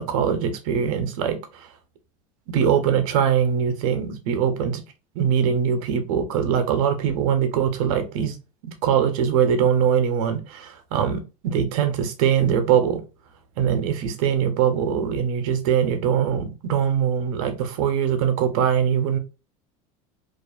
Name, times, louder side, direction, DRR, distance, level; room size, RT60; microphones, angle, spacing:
voice 1, 0.0-1.7 2.5-4.8 5.2-8.4 8.8-13.0 13.6-19.2, right 8 dB, 75° right, 0.7 m, -22 dB
2.4 x 2.4 x 2.3 m
supercardioid pair, 135°, 18 cm